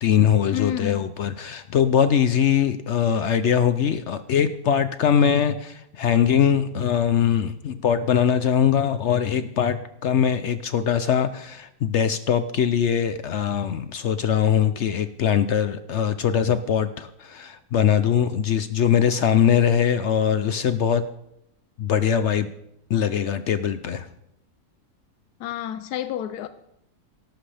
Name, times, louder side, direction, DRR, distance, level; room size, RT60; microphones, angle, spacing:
voice 1, 0.0-21.0 21.8-22.5 22.9-24.1, left 8 dB, 65° left, 0.7 m, -22 dB
voice 2, 0.5-1.0 25.4-26.5, left 11 dB, 85° left, 1.2 m, -29 dB
18.0 x 12.0 x 3.4 m
omnidirectional pair, 1.6 m